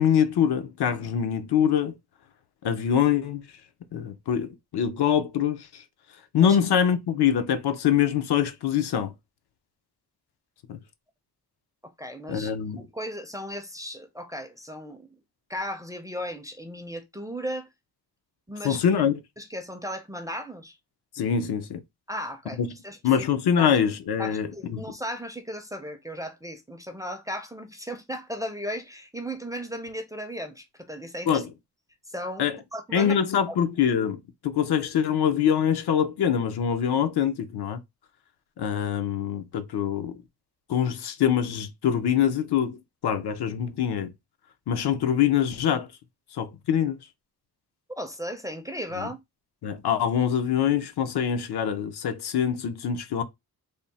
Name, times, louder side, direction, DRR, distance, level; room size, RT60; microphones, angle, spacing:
voice 1, 0.0-2.0 2.6-3.4 3.9-5.8 6.3-9.1 10.7-10.8 12.3-12.9 18.6-19.2 21.2-21.8 22.6-22.7 23.0-24.9 31.3-31.5 32.4-32.6 32.9-37.8 38.6-40.2 40.7-44.1 44.7-45.9 46.3-47.0 49.0-49.1 49.6-53.2, left 8 dB, 80° left, 0.7 m, -24 dB
voice 2, 12.0-15.1 15.5-17.7 18.5-18.8 19.4-20.8 22.1-22.6 22.8-23.3 23.6-23.7 24.2-31.4 32.1-33.2 33.5-33.6 48.0-49.2, equal, 10° right, 0.4 m, -36 dB
3.5 x 2.0 x 4.0 m
wide cardioid pair, 175°, 39 cm